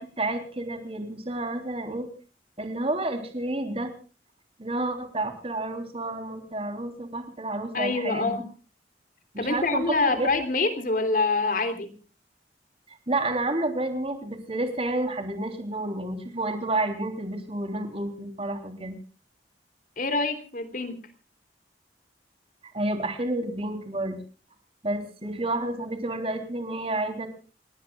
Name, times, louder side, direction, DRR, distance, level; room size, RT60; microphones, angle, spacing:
voice 1, 0.0-2.1 2.6-3.9 4.6-8.3 9.3-10.3 12.9-19.0 22.7-24.2 24.8-27.3, right 2 dB, 35° right, 6 dB, 3.5 m, -30 dB
voice 2, 7.7-8.5 9.4-11.9 20.0-21.1, left 3 dB, 50° left, 9 dB, 3.3 m, -26 dB
29.0 x 19.0 x 2.4 m, 0.36 s
head